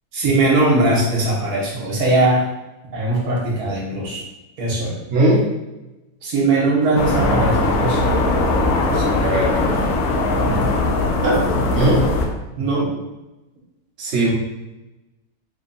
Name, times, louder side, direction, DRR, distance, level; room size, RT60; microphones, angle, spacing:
voice 1, 0.1-2.4 2.9-4.2 4.6-4.9 6.2-8.2 10.4-10.7 11.2-11.5 12.6-12.9, right 2 dB, 70° right, -3 dB, 1.5 m, -20 dB
voice 2, 5.1-5.5 8.9-9.7 11.7-12.1 14.0-14.3, right 1 dB, 55° right, -4 dB, 1.0 m, -19 dB
sound 1, 6.9-12.3, left 2 dB, 80° left, 1.1 m, -19 dB
3.6 x 2.2 x 4.0 m, 1.0 s
omnidirectional pair, 1.7 m